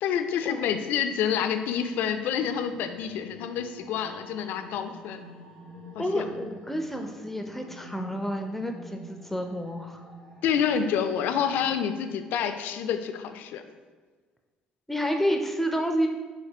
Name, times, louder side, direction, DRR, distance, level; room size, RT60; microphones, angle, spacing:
voice 1, 0.0-5.2 6.0-6.3 10.4-13.6, left 8 dB, 65° left, 8 dB, 0.3 m, -28 dB
sound 1, 1.6-11.8, left 1 dB, 80° right, 0.9 m, -48 dB
voice 2, 6.0-10.0 14.9-16.1, equal, 5° left, 4 dB, 0.5 m, -29 dB
5.9 x 2.9 x 2.8 m, 1.4 s
hypercardioid pair, 55°, 3 cm